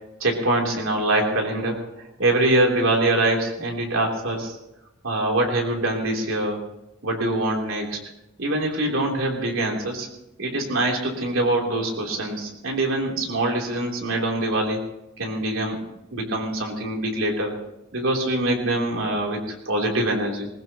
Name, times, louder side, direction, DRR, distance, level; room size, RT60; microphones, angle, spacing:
voice 1, 0.2-1.8 2.2-4.6 5.0-6.6 7.0-8.0 8.4-10.1 10.4-14.8 15.2-15.8 16.1-17.5 17.9-20.5, right 1 dB, 75° right, 0 dB, 3.4 m, -24 dB
20.5 x 20.0 x 3.0 m, 0.92 s
head